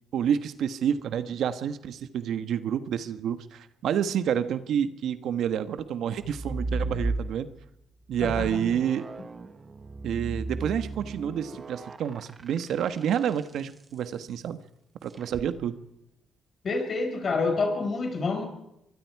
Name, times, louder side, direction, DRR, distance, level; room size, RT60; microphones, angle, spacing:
voice 1, 0.1-7.5 8.1-9.0 10.0-14.6 15.0-15.8, right 9 dB, 75° right, 12 dB, 1.3 m, -29 dB
sound 1, 6.2-7.6 8.1-13.6 15.1-15.5, right 2 dB, 30° right, 1.5 m, -35 dB
voice 2, 8.2-8.8 16.6-18.4, left 3 dB, 45° left, 5 dB, 5.4 m, -28 dB
24.5 x 23.0 x 4.8 m, 0.83 s
cardioid pair, 90°, 0 cm